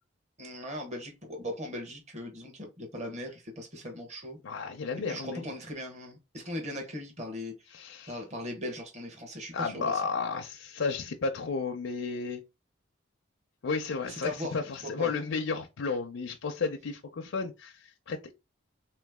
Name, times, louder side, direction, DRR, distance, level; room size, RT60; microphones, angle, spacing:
voice 1, 0.4-4.4 5.1-7.5 8.1-10.0 14.0-14.6 14.8-15.1, left 1 dB, 35° right, 1.2 m, -39 dB
voice 2, 4.4-5.4 7.7-8.2 9.5-12.4 13.6-18.3, left 4 dB, 85° left, 0.5 m, -33 dB
3.4 x 3.1 x 3.5 m
head